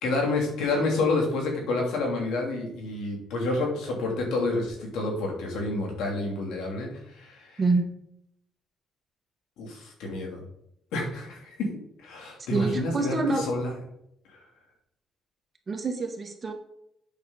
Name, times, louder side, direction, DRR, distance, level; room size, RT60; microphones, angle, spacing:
voice 1, 0.0-7.6 9.6-10.4 10.9-11.7 12.0-13.7 14.3-14.4, left 2 dB, 90° left, 0 dB, 2.9 m, -29 dB
voice 2, 12.5-13.5 15.7-16.5, right 3 dB, 35° right, 4 dB, 1.9 m, -26 dB
8.5 x 6.5 x 4.0 m, 0.75 s
cardioid pair, 90°, 0 cm